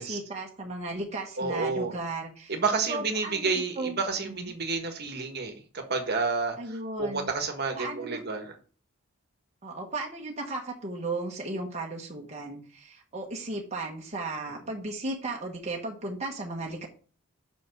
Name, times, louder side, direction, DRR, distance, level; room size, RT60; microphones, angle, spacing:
voice 1, 0.0-2.5 2.9-4.0 4.2-4.5 6.6-7.3 7.7-8.2 9.6-16.9, right 2 dB, 35° right, -1 dB, 1.2 m, -35 dB
voice 2, 1.4-2.0 2.5-8.5, right 4 dB, 55° right, 5 dB, 1.4 m, -30 dB
5.7 x 5.1 x 6.5 m, 0.40 s
head